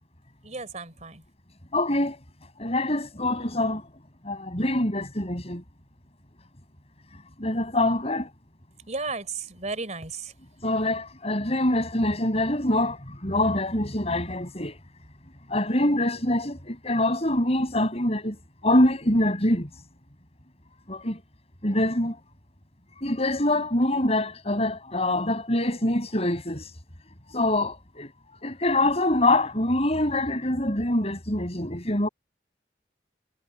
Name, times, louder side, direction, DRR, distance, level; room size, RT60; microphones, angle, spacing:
voice 1, 0.4-1.2 8.9-10.1, right 3 dB, 40° right, 4.0 m, -33 dB
voice 2, 1.7-2.2 2.6-3.8 4.2-5.6 7.4-8.3 10.6-14.8 15.5-19.7 20.9-21.2 21.6-22.2 23.0-26.7 27.3-28.1 28.4-32.1, left 1 dB, 35° left, 6.4 m, -25 dB
head